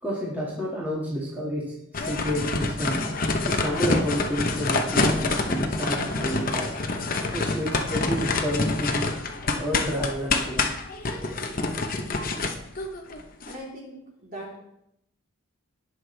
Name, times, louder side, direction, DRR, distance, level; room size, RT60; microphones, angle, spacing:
voice 1, 0.0-3.0 3.5-6.7 7.3-9.0 9.6-10.7 11.0-11.2, equal, 10° right, -7 dB, 2.0 m, -30 dB
sound 1, 1.9-13.5, left 3 dB, 40° left, 0.8 m, -27 dB
voice 2, 13.5-14.0 14.2-14.6, right 1 dB, 40° right, -4 dB, 3.5 m, -39 dB
18.5 x 6.3 x 3.4 m, 0.80 s
head